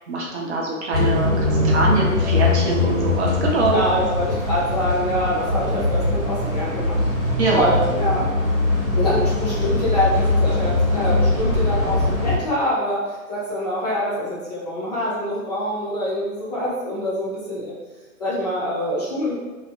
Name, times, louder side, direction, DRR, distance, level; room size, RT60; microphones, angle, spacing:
voice 1, 0.1-3.8 7.4-7.7, right 3 dB, 50° right, -3 dB, 0.6 m, -23 dB
sound 1, 0.9-12.4, left 2 dB, 25° right, 1.0 m, -21 dB
voice 2, 3.7-7.0 7.5-8.3 8.9-17.7 18.2-19.3, equal, 30° left, -7 dB, 0.5 m, -25 dB
2.7 x 2.0 x 2.4 m, 1.3 s
hypercardioid pair, 140°, 44 cm